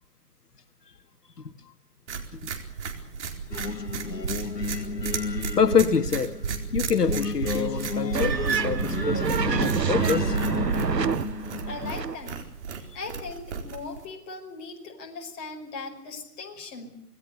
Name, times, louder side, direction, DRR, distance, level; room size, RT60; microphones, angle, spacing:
voice 1, 1.4-1.7 5.6-6.3 6.7-10.4, left 6 dB, 70° left, 1.7 m, -26 dB
sound 1, 2.1-14.1, right 6 dB, 45° right, 4.3 m, -34 dB
Singing, 3.5-12.0, left 5 dB, 90° left, 1.7 m, -33 dB
sound 2, 8.1-12.2, right 6 dB, 85° right, 1.1 m, -27 dB
voice 2, 11.7-12.4 12.9-17.0, left 3 dB, 20° left, 5.3 m, -39 dB
26.5 x 19.5 x 6.8 m
figure-of-eight pair, 140°, 48 cm